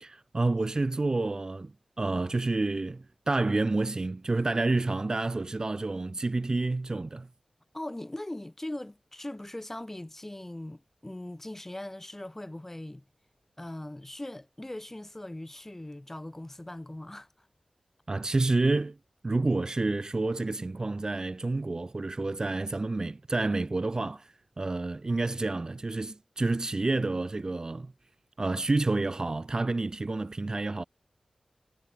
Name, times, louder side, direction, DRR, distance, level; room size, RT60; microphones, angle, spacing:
voice 1, 0.0-1.7 2.0-7.3 18.1-19.0 19.2-27.9 28.4-30.8, right 2 dB, 30° right, 0.6 m, -29 dB
voice 2, 7.7-13.0 13.6-17.3 25.1-25.3, left 1 dB, 15° left, 1.3 m, -40 dB
wide cardioid pair, 115°, 2 cm